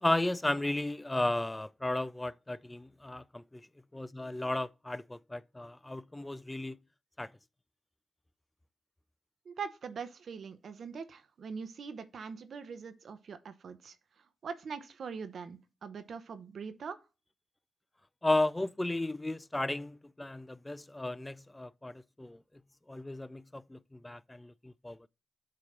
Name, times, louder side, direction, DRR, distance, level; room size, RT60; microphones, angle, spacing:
voice 1, 0.0-3.6 3.9-6.8 7.2-7.3 18.2-22.4 22.9-25.1, left 1 dB, 20° left, 0.4 m, -34 dB
voice 2, 9.4-17.0, right 5 dB, 65° right, 0.8 m, -43 dB
7.7 x 2.9 x 4.9 m
supercardioid pair, 45°, 0 cm